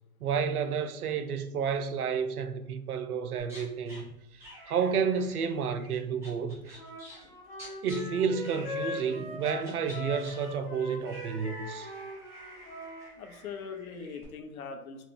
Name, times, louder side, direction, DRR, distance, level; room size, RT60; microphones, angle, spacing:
voice 1, 0.2-6.8 7.8-11.9, right 6 dB, 80° right, 0.6 m, -31 dB
sound 1, 3.4-4.0 4.4-8.0 8.4-9.1 9.4-14.2, equal, 5° right, 0.4 m, -50 dB
Wind instrument woodwind instrument, 6.7-13.1, left 2 dB, 10° left, 1.2 m, -40 dB
voice 2, 13.2-15.1, left 5 dB, 70° left, 0.8 m, -41 dB
4.1 x 2.4 x 3.5 m
hypercardioid pair, 120°, 44 cm